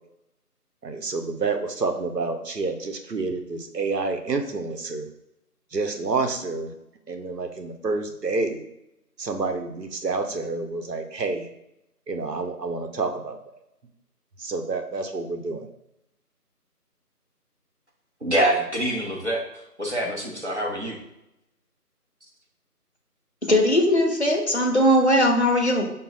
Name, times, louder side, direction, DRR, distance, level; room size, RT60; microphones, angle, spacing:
voice 1, 0.8-5.1 5.7-6.7 7.1-8.6 9.2-11.5 12.1-13.4 14.4-15.7, right 3 dB, 90° right, 6 dB, 0.8 m, -28 dB
voice 2, 18.2-21.0, right 1 dB, 45° right, -1 dB, 0.8 m, -25 dB
voice 3, 23.4-25.8, equal, 45° left, 1 dB, 0.6 m, -19 dB
5.3 x 2.0 x 4.0 m, 0.86 s
figure-of-eight pair, 170°, 47 cm